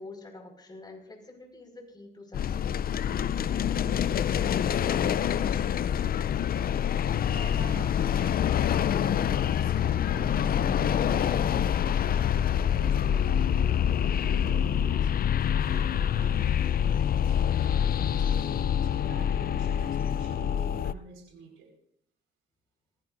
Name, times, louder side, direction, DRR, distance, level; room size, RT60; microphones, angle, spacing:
voice 1, 0.0-2.7, left 2 dB, 20° left, 2 dB, 5.3 m, -46 dB
sound 1, 2.3-20.9, left 9 dB, 50° left, 0.5 m, -26 dB
voice 2, 3.6-4.3 4.7-5.2 6.6-12.3 12.6-15.1 15.6-21.7, right 4 dB, 90° right, 1 dB, 5.2 m, -47 dB
24.0 x 15.5 x 2.7 m, 0.71 s
cardioid pair, 90°, 20 cm